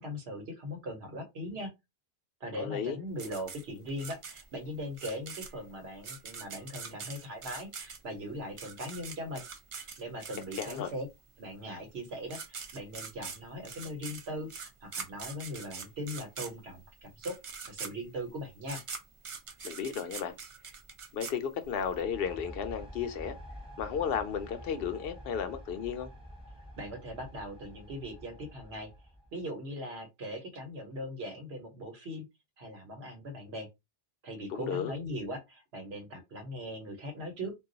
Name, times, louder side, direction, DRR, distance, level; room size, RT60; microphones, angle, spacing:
voice 1, 0.0-1.7 2.4-9.4 10.0-11.1 11.4-17.3 17.7-18.8 26.8-28.9 29.3-32.3 32.6-33.7 34.2-37.5, equal, 85° right, 1.2 m, -40 dB
voice 2, 2.6-3.0 10.6-10.9 19.6-20.4 21.1-23.4 23.8-26.1 34.5-34.9, left 7 dB, 70° left, 0.8 m, -34 dB
sound 1, 3.2-11.1 12.0-12.1 12.3-21.9, right 5 dB, 45° right, 0.4 m, -43 dB
sound 2, 21.6-29.4, equal, 5° right, 1.0 m, -48 dB
2.3 x 2.3 x 3.8 m
omnidirectional pair, 1.0 m